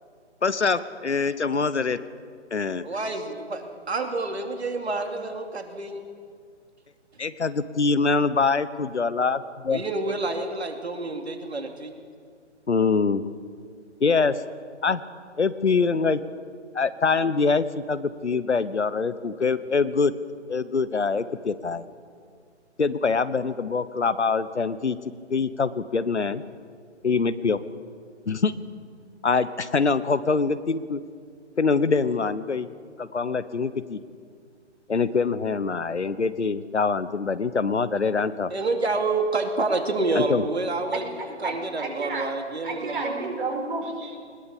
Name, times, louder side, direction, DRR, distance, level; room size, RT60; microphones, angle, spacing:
voice 1, 0.4-2.0 2.5-2.8 7.2-9.8 12.7-13.2 14.0-14.3 14.8-15.0 15.4-16.2 16.7-20.1 20.5-21.8 22.8-25.0 25.3-26.4 27.0-27.6 28.3-28.5 29.2-31.0 31.6-32.7 33.0-34.0 34.9-38.5 40.3-40.4, left 4 dB, 70° left, 15 dB, 1.2 m, -24 dB
voice 2, 2.8-6.0 9.7-11.9 38.5-41.0 41.4-43.3, right 3 dB, 60° right, 5 dB, 2.7 m, -28 dB
voice 3, 41.4-42.3 42.6-44.2, right 3 dB, 45° right, 2 dB, 5.0 m, -31 dB
20.5 x 20.5 x 7.1 m, 2.1 s
figure-of-eight pair, 145°, 36 cm